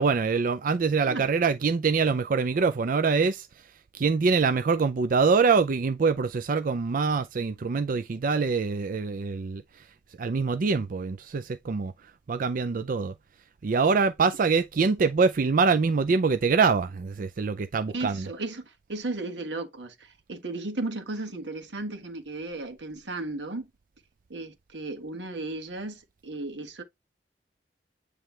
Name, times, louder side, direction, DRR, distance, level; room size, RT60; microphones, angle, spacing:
voice 1, 0.0-9.9 10.2-13.1 13.6-18.3, right 5 dB, 50° right, 0.4 m, -25 dB
voice 2, 17.9-23.7 24.3-26.8, right 2 dB, 90° right, 1.5 m, -35 dB
9.1 x 3.3 x 3.2 m
head